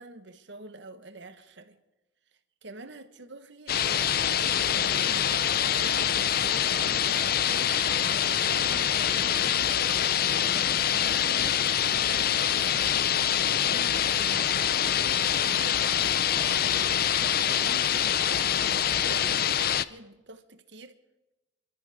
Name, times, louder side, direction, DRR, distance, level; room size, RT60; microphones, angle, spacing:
voice 1, 0.0-1.8 2.6-7.6 8.2-10.1 10.4-21.0, right 2 dB, 60° right, 1.3 m, -46 dB
sound 1, 3.7-19.8, left 9 dB, 50° left, 0.5 m, -25 dB
28.5 x 13.0 x 3.6 m
head